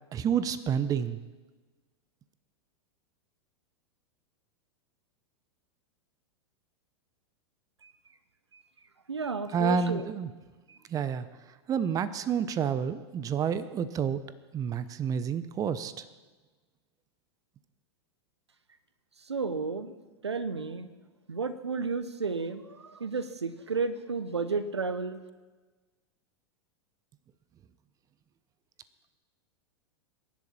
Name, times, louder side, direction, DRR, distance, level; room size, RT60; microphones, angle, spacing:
voice 1, 0.1-1.2 9.5-10.3 10.9-11.3 11.7-14.2 14.5-16.0, right 7 dB, 25° right, 14 dB, 0.8 m, -29 dB
voice 2, 9.1-10.0 10.7-10.8 19.3-19.9 20.2-20.9 21.3-25.2, right 4 dB, 85° right, 13 dB, 0.9 m, -32 dB
23.5 x 10.5 x 4.3 m, 1.3 s
figure-of-eight pair, 95°, 14 cm